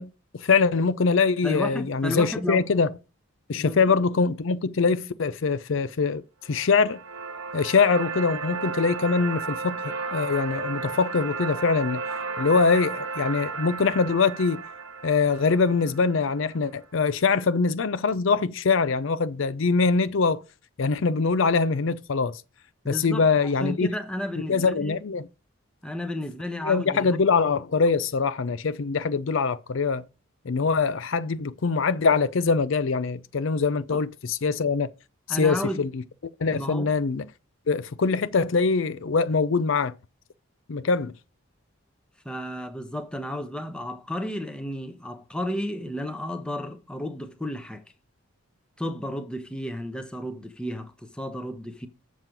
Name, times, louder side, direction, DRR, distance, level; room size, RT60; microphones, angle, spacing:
voice 1, 0.0-2.9 3.5-6.2 6.5-7.0 7.5-12.0 12.4-14.6 15.0-20.4 20.8-22.4 22.9-23.9 24.5-25.3 26.6-30.0 30.5-34.9 35.3-36.0 36.4-37.3 37.7-39.9 40.7-41.1, left 4 dB, 65° left, 0.5 m, -23 dB
voice 2, 1.4-2.7 3.6-4.0 22.8-23.3 23.6-25.0 25.8-27.2 33.9-34.0 35.3-35.8 36.5-36.9 42.2-47.8 48.8-51.9, left 1 dB, 5° left, 0.8 m, -33 dB
sound 1, 6.5-16.6, right 4 dB, 75° right, 1.3 m, -34 dB
7.4 x 6.2 x 5.2 m
head